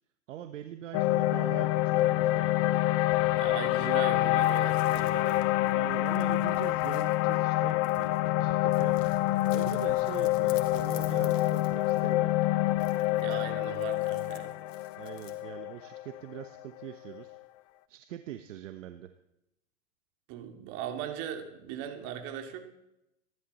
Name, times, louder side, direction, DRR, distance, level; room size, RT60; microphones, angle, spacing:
voice 1, 0.3-2.7 5.7-8.1 8.4-8.9 9.5-12.5 15.0-17.4 17.9-19.1, right 12 dB, 65° right, 8 dB, 1.1 m, -43 dB
sound 1, 0.9-17.2, left 16 dB, 40° left, 0.7 m, -27 dB
voice 2, 3.4-5.4 13.2-14.5 20.3-22.7, right 9 dB, 45° right, 4 dB, 2.7 m, -39 dB
sound 2, 4.4-8.3 8.7-12.2 12.7-15.4, left 9 dB, 70° left, 2.5 m, -53 dB
25.0 x 11.5 x 4.2 m, 0.87 s
hypercardioid pair, 105°, 40 cm